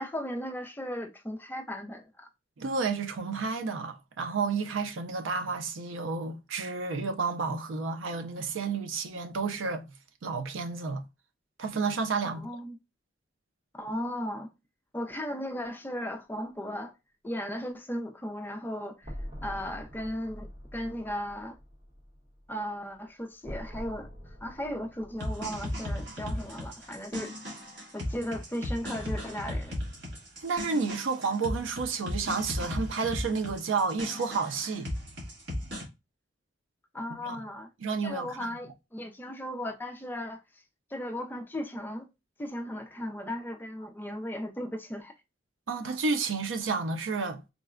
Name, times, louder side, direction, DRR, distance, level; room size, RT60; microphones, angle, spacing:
voice 1, 0.0-2.3 12.2-12.8 13.7-14.5 14.9-16.9 17.2-19.1 19.4-21.6 22.5-27.3 27.9-29.8 36.9-37.7 38.0-40.4 40.9-42.1 42.4-45.1, equal, 10° left, 0.4 m, -36 dB
voice 2, 2.6-9.8 10.2-11.0 11.6-12.5 30.4-34.9 37.2-37.4 37.8-38.6 45.7-47.5, right 4 dB, 80° right, 0.5 m, -31 dB
sound 1, 19.0-27.0, equal, 30° right, 1.0 m, -45 dB
sound 2, 25.2-35.8, left 1 dB, 65° right, 1.4 m, -36 dB
3.6 x 2.1 x 2.3 m
head